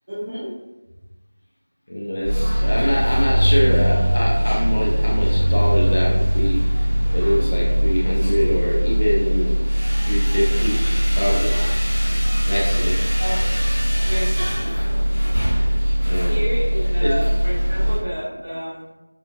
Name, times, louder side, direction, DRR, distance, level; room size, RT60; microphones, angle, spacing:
voice 1, 0.1-0.5 13.2-13.4 14.1-14.9 16.3-18.9, equal, 25° right, -8 dB, 1.0 m, -30 dB
voice 2, 1.9-6.7 7.1-9.6 10.0-10.8 11.2-11.5 12.5-12.9 16.1-16.4 17.0-17.1, equal, 30° left, -4 dB, 0.5 m, -24 dB
sound 1, 2.2-18.0, equal, 5° right, 0.6 m, -20 dB
5.6 x 2.4 x 2.5 m, 1.0 s
figure-of-eight pair, 180°, 0 cm